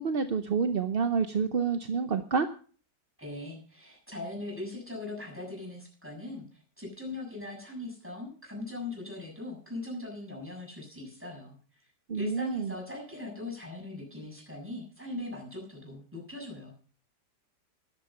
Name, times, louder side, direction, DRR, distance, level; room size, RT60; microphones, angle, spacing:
voice 1, 0.0-2.5 12.1-12.7, right 5 dB, 50° right, 8 dB, 0.7 m, -28 dB
voice 2, 3.2-11.9 12.1-16.7, left 2 dB, 5° right, 0 dB, 7.0 m, -40 dB
12.5 x 11.5 x 5.5 m, 0.41 s
omnidirectional pair, 1.9 m